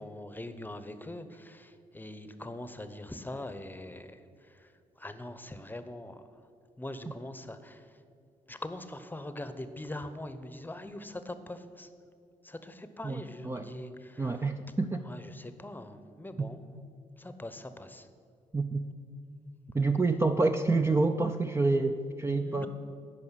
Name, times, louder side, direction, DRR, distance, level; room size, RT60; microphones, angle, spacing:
voice 1, 0.0-6.2 6.8-8.0 8.5-11.9 12.4-14.5 15.0-16.6 17.2-18.1 22.4-22.7, left 1 dB, 10° left, 10 dB, 0.9 m, -42 dB
voice 2, 13.0-13.7 14.2-15.0 16.4-16.5 18.5-18.9 19.7-22.7, right 3 dB, 15° right, 6 dB, 0.5 m, -28 dB
10.5 x 5.2 x 8.2 m, 2.4 s
hypercardioid pair, 50°, 15 cm